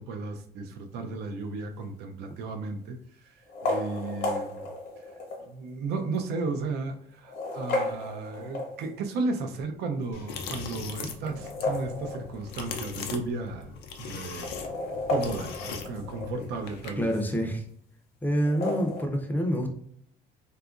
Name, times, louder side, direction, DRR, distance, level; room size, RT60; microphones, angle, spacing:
voice 1, 0.0-4.7 5.0-5.1 5.4-13.7 14.0-14.5 15.1-17.1, right 3 dB, 80° right, 5 dB, 0.5 m, -34 dB
sound 1, 1.8-2.2 3.4-5.5 6.1-6.2 7.1-9.1 11.2-12.7 13.0-13.1 13.3-13.4 14.2-16.5 18.4-19.0, left 2 dB, 65° left, 0.8 m, -33 dB
sound 2, 10.1-17.1, left 5 dB, 90° left, 0.4 m, -40 dB
voice 2, 17.0-17.6 18.2-19.7, equal, 10° left, 3 dB, 0.5 m, -27 dB
2.8 x 2.3 x 2.4 m, 0.64 s
cardioid pair, 110°, 17 cm